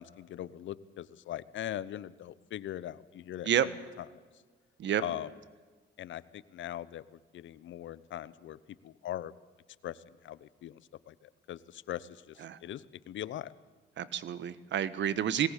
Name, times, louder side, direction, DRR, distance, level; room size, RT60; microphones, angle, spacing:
voice 1, 0.0-3.8 5.0-5.3 6.0-9.3 9.8-10.8 11.1-13.5, left 12 dB, 70° left, 17 dB, 1.0 m, -41 dB
voice 2, 14.0-15.5, right 9 dB, 70° right, 15 dB, 1.4 m, -29 dB
21.0 x 18.0 x 8.3 m, 1.4 s
cardioid pair, 90°, 20 cm